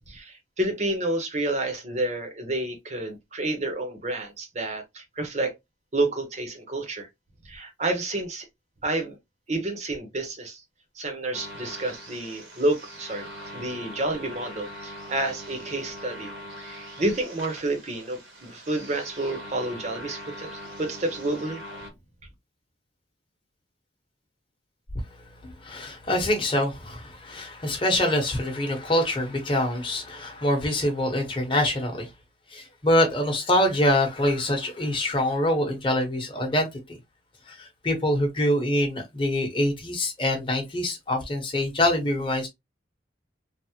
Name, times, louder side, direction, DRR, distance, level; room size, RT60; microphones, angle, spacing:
voice 1, 0.1-5.5 5.9-7.1 7.4-8.5 8.8-9.1 9.5-10.6 11.0-13.3 13.5-16.3 16.6-21.6, right 2 dB, 35° right, 0.7 m, -29 dB
sound 1, 11.3-21.9, equal, 85° right, 1.3 m, -41 dB
voice 2, 25.4-32.1 32.5-36.7 37.5-42.5, left 1 dB, 25° left, 0.9 m, -25 dB
3.3 x 2.0 x 2.8 m
head